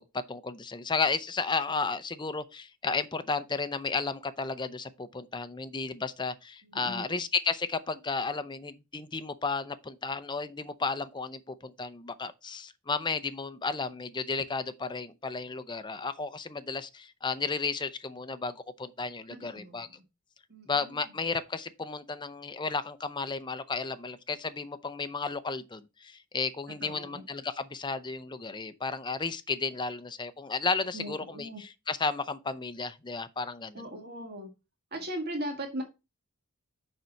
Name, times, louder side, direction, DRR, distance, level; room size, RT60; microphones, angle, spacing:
voice 1, 0.0-19.9 20.7-33.8, left 4 dB, 20° left, 0.6 m, -33 dB
voice 2, 6.7-7.2 19.3-20.0 20.5-21.1 26.8-27.3 30.9-31.6 33.7-34.5 34.9-35.8, right 1 dB, 45° right, 1.8 m, -39 dB
6.6 x 5.4 x 4.5 m
head